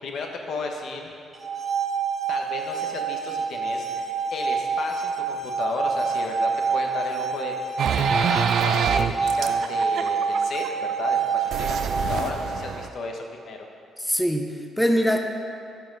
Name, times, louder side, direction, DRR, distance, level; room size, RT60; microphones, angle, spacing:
voice 1, 0.0-1.1 2.3-7.6 7.9-11.8 12.1-13.6, left 3 dB, 65° left, 2 dB, 1.0 m, -34 dB
sound 1, 1.3-12.3, right 5 dB, 40° right, 1.5 m, -27 dB
sound 2, 7.8-10.9 11.5-12.9, right 7 dB, 70° right, 0.4 m, -26 dB
voice 2, 14.0-15.2, equal, 5° left, 4 dB, 0.6 m, -23 dB
11.5 x 4.7 x 4.7 m, 2.4 s
cardioid pair, 90°, 0 cm